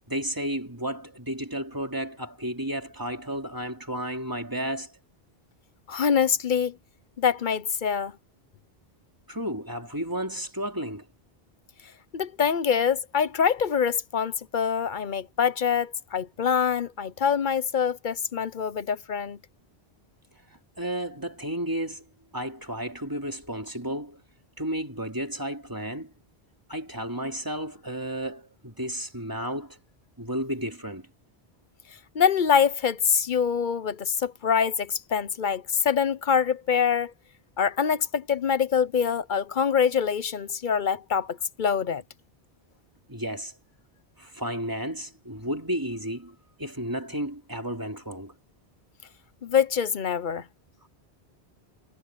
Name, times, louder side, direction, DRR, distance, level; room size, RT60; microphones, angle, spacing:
voice 1, 0.1-4.9 9.3-11.1 20.8-22.1 22.3-24.2 24.6-26.1 26.7-29.8 30.2-31.1 43.1-43.5 44.2-48.3, equal, 20° right, 3.2 m, -32 dB
voice 2, 5.9-6.8 7.2-8.1 12.1-19.4 32.1-37.1 37.6-42.0 49.4-50.5, left 7 dB, 50° left, 0.9 m, -25 dB
omnidirectional pair, 1.1 m